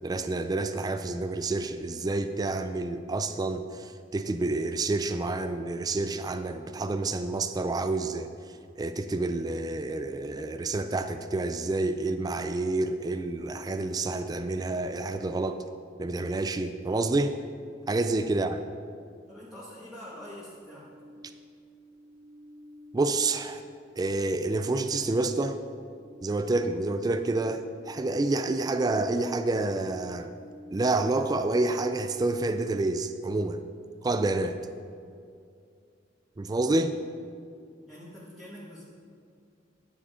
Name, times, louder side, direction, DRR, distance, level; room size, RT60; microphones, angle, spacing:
voice 1, 0.0-8.3 8.8-15.6 16.0-17.4 17.9-18.6 22.9-23.6 24.0-25.6 26.2-30.3 30.7-33.6 34.0-34.6 36.4-37.0, right 2 dB, 20° right, 9 dB, 0.3 m, -28 dB
voice 2, 19.3-20.9 37.9-38.8, equal, ahead, -9 dB, 1.5 m, -45 dB
sound 1, 20.1-31.7, left 1 dB, 35° right, 2.4 m, -51 dB
9.9 x 6.9 x 5.0 m, 2.4 s
head